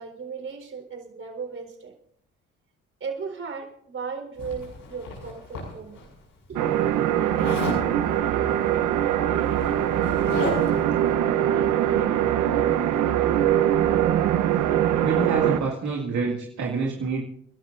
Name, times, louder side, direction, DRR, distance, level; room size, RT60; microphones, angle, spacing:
voice 1, 0.0-1.9 3.0-6.0 6.5-6.7, right 5 dB, 45° right, 3 dB, 4.2 m, -36 dB
Zipper (clothing), 4.4-6.0 7.4-7.8 9.0-9.1 9.4-10.9, left 2 dB, 80° left, 6.4 m, -33 dB
sound 1, 6.6-15.6, right 11 dB, 85° right, 0.9 m, -22 dB
voice 2, 15.0-17.2, right 4 dB, 70° right, -2 dB, 2.3 m, -27 dB
30.0 x 12.0 x 2.6 m, 0.68 s
cardioid pair, 90°, 30 cm